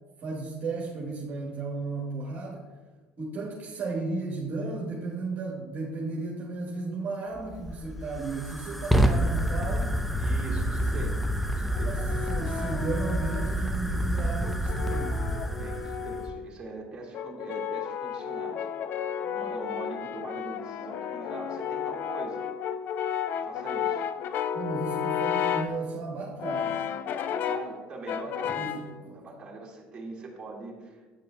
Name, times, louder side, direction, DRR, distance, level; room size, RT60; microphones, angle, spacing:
voice 1, 0.2-2.6 3.2-10.0 10.7-11.0 11.8-15.3 24.5-26.8 28.5-28.7 29.0-29.2, right 3 dB, 50° right, -3 dB, 1.3 m, -34 dB
Fire, 7.3-16.3, equal, ahead, 0.5 m, -28 dB
voice 2, 10.2-11.2 11.5-12.0 15.6-18.7 19.2-22.4 23.3-24.0 27.2-31.0, right 3 dB, 25° right, -4 dB, 1.9 m, -42 dB
Brass instrument, 11.7-13.7 14.4-16.5 17.1-25.8 26.4-27.8 28.1-28.9, left 8 dB, 55° left, 0.3 m, -33 dB
9.2 x 5.1 x 2.2 m, 1.3 s
supercardioid pair, 90°, 4 cm